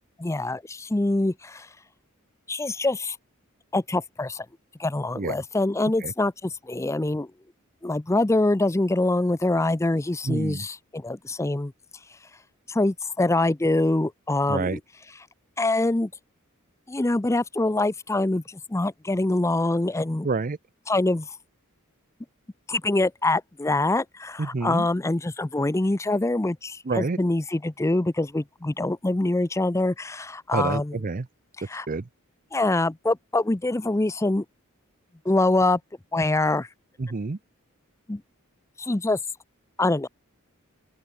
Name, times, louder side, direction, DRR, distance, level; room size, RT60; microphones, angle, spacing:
voice 1, 0.2-1.7 2.5-3.2 3.7-4.5 4.8-7.3 7.8-11.7 12.7-14.8 15.6-16.1 16.9-20.3 20.9-21.3 22.7-31.0 31.7-31.9 32.5-34.4 35.3-35.8 36.1-36.7 38.1-38.2 38.8-39.2 39.8-40.1, left 2 dB, 15° left, 0.5 m, -24 dB
voice 2, 10.2-10.7 14.5-14.8 20.2-20.6 24.4-24.9 26.8-27.2 30.5-31.3 31.9-32.1 37.0-37.4, right 3 dB, 40° right, 0.6 m, -28 dB
open air
head